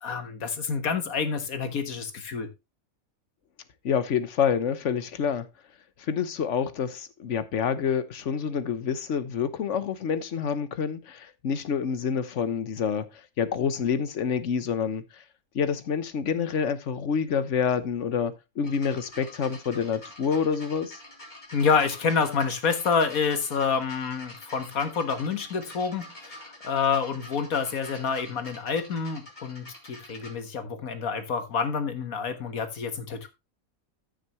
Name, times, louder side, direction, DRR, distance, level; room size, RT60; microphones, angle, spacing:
voice 1, 0.0-2.5 21.5-33.3, left 5 dB, 85° left, 1.9 m, -28 dB
voice 2, 3.8-5.5 6.0-15.2 15.5-21.0, left 7 dB, 60° left, 1.3 m, -27 dB
sound 1, 18.6-30.3 31.3-31.4, left 1 dB, 30° left, 3.5 m, -47 dB
14.0 x 6.7 x 3.1 m
omnidirectional pair, 1.4 m